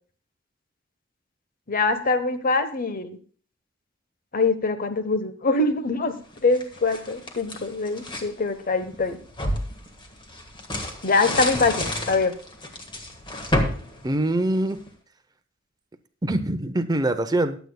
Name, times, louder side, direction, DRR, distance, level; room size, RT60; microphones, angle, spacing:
voice 1, 1.7-3.2 4.3-9.2 11.0-12.3, left 3 dB, 45° left, 10 dB, 1.0 m, -24 dB
sound 1, 6.3-8.3 8.8-14.9, left 1 dB, 25° left, 1.6 m, -30 dB
voice 2, 14.0-14.8 16.2-17.6, right 1 dB, 20° right, 9 dB, 0.7 m, -23 dB
21.0 x 8.1 x 2.3 m, 0.43 s
head